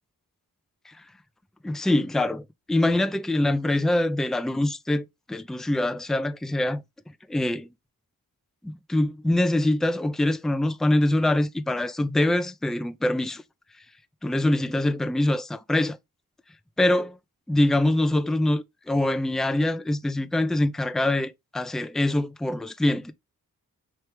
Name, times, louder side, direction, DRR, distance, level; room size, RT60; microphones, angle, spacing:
voice 1, 1.6-6.8 7.3-7.7 8.6-13.4 14.2-16.0 16.8-17.2 17.5-23.1, left 1 dB, ahead, 0.4 m, -24 dB
4.7 x 3.2 x 3.2 m
cardioid pair, 70°, 36 cm